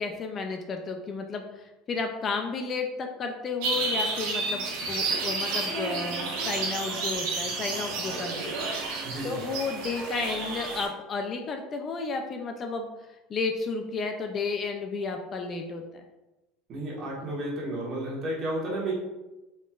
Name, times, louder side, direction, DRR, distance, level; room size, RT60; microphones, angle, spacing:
voice 1, 0.0-12.9 13.3-16.0, left 4 dB, 30° left, 4 dB, 0.3 m, -33 dB
sound 1, 3.6-10.9, right 3 dB, 75° right, 0.9 m, -31 dB
voice 2, 9.0-9.4 16.7-18.9, right 1 dB, 40° right, -5 dB, 1.4 m, -32 dB
4.2 x 3.0 x 2.3 m, 1.0 s
cardioid pair, 140°, 0 cm